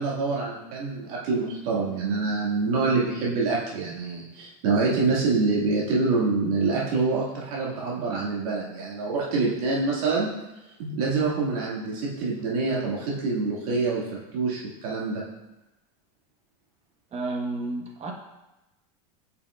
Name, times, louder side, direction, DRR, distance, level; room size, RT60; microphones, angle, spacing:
voice 1, 0.0-10.3 10.8-14.0 14.3-15.2, right 3 dB, 75° right, -5 dB, 2.2 m, -26 dB
voice 2, 17.1-18.1, right 2 dB, 35° right, 1 dB, 1.3 m, -31 dB
9.2 x 5.8 x 2.5 m, 0.99 s
supercardioid pair, 105°, 19 cm